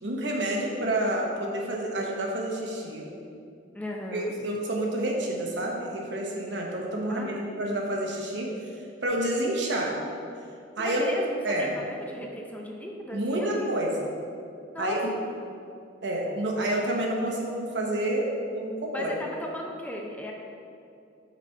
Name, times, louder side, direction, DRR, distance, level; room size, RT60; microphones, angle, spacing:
voice 1, 0.0-3.1 4.1-8.5 9.0-9.9 10.8-11.1 11.4-11.7 13.1-14.1 14.8-15.0 16.0-18.3 18.5-19.1, right 1 dB, 80° right, -1 dB, 1.0 m, -29 dB
voice 2, 3.7-4.4 7.1-7.8 10.8-13.7 14.7-15.4 18.9-20.3, equal, 10° left, 0 dB, 0.5 m, -36 dB
6.1 x 4.2 x 4.4 m, 2.5 s
head